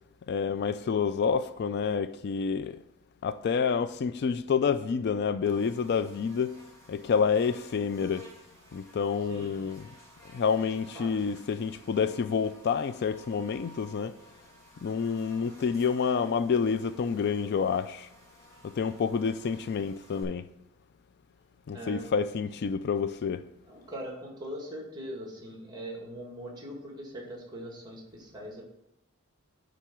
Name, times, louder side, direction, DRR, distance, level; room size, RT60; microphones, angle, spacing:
voice 1, 0.3-2.8 3.2-6.6 6.9-8.3 8.7-9.9 10.3-14.1 14.8-18.1 18.6-20.5 21.7-23.4, left 6 dB, 50° left, 0.3 m, -28 dB
Buzz, 5.4-20.2, equal, 15° left, 2.7 m, -55 dB
voice 2, 10.7-11.1 21.7-22.1 23.6-28.6, equal, 20° right, 2.0 m, -41 dB
9.1 x 4.0 x 5.9 m
head